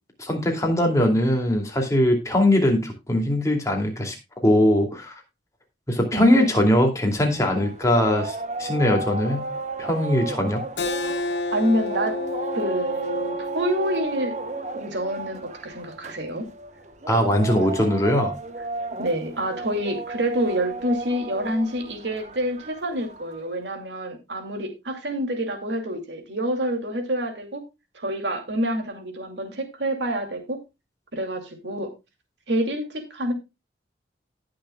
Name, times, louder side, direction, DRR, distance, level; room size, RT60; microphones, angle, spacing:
voice 1, 0.2-4.1 4.4-5.1 5.9-9.5 9.8-10.6 17.1-18.3, left 1 dB, 20° left, 2 dB, 2.5 m, -21 dB
voice 2, 6.1-6.8 11.5-12.1 12.5-14.4 14.7-16.4 19.0-27.6 27.9-30.6 31.1-31.9 32.5-33.3, right 1 dB, 75° right, 5 dB, 2.5 m, -27 dB
sound 1, 7.2-23.6, right 2 dB, 40° right, 1.0 m, -34 dB
Keyboard (musical), 10.8-16.0, left 3 dB, 75° left, 1.5 m, -32 dB
18.5 x 6.6 x 2.3 m, 0.24 s
head